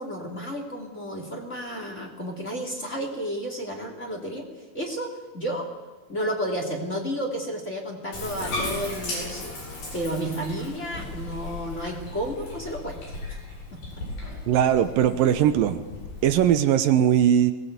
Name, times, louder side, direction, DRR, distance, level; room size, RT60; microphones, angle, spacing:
voice 1, 0.0-4.5 4.7-5.7 6.1-9.5 9.9-13.0 13.7-13.8, equal, 20° left, 1 dB, 3.1 m, -32 dB
Bathtub (filling or washing), 8.1-16.5, left 2 dB, 75° left, 8.7 m, -36 dB
voice 2, 14.5-15.8 16.2-17.5, right 10 dB, 75° right, 10 dB, 2.6 m, -20 dB
22.5 x 19.5 x 8.2 m, 1.2 s
omnidirectional pair, 4.1 m